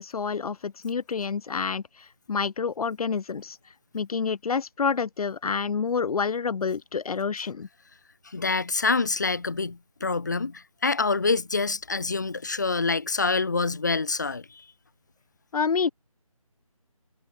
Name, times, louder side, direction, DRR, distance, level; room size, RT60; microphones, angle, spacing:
voice 1, 0.0-1.8 2.3-3.6 3.9-7.7 15.5-15.9, left 5 dB, 85° left, 0.5 m, -28 dB
voice 2, 8.2-14.6, left 4 dB, 30° left, 0.7 m, -26 dB
figure-of-eight pair, 175°, 19 cm